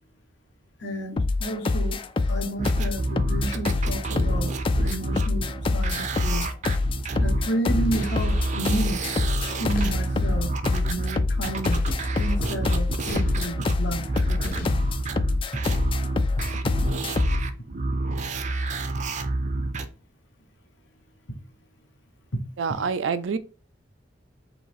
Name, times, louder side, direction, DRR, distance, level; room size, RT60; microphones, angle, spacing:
voice 1, 0.8-2.0 2.3-6.5 7.2-9.0 9.5-11.9 12.2-14.8 22.7-22.8, right 1 dB, 65° left, 1.1 m, -32 dB
sound 1, 1.2-17.5, left 3 dB, 30° left, 0.3 m, -25 dB
sound 2, 2.6-19.9, right 2 dB, 40° right, 0.5 m, -29 dB
sound 3, 7.8-8.4 9.7-10.5 11.6-13.8 14.4-15.2, left 1 dB, 50° left, 0.7 m, -37 dB
voice 2, 22.6-23.4, right 5 dB, 90° right, 0.5 m, -26 dB
4.0 x 2.8 x 4.7 m
head